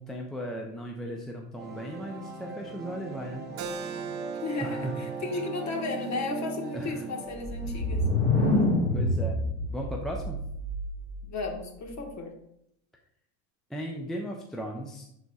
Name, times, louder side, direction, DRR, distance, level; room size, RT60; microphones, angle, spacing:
voice 1, 0.0-3.5 4.6-5.0 6.7-7.1 8.4-9.4 9.7-10.4 13.7-15.1, equal, ahead, 0 dB, 0.5 m, -37 dB
sound 1, 1.5-8.4, right 3 dB, 20° right, 1.0 m, -41 dB
Keyboard (musical), 3.6-8.8, right 6 dB, 40° right, 0.6 m, -40 dB
voice 2, 4.4-8.0 11.3-12.4, left 3 dB, 35° left, 2 dB, 1.5 m, -34 dB
sound 2, 7.3-11.1, left 1 dB, 15° left, 2.2 m, -27 dB
11.0 x 4.1 x 2.4 m, 0.76 s
supercardioid pair, 110°, 47 cm